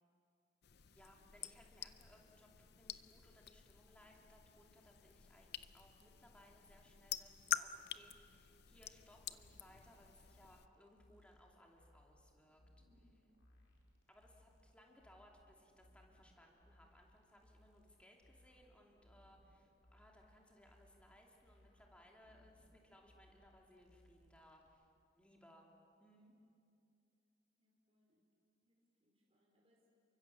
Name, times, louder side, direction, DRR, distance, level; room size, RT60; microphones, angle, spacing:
sound 1, 0.6-10.7, left 10 dB, 55° left, 0.7 m, -48 dB
voice 1, 0.9-12.6 14.1-24.8 25.1-25.7 26.0-26.3, equal, 5° left, 0 dB, 2.8 m, -65 dB
sound 2, 8.8-24.7, left 1 dB, 80° left, 4.6 m, -69 dB
voice 2, 12.8-13.3 26.1-26.2 27.6-28.2 28.6-29.9, left 1 dB, 30° right, -2 dB, 4.8 m, -77 dB
29.5 x 24.0 x 7.2 m, 2.6 s
head